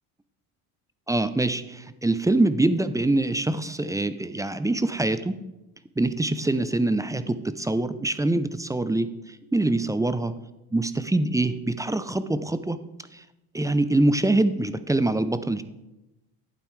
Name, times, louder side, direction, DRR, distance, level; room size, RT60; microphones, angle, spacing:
voice 1, 1.1-5.4 6.0-9.1 9.5-10.3 10.7-12.8 13.1-13.2 13.5-15.6, right 2 dB, 10° right, 12 dB, 0.5 m, -24 dB
11.5 x 8.9 x 3.2 m, 0.96 s
hypercardioid pair, 75°, 44 cm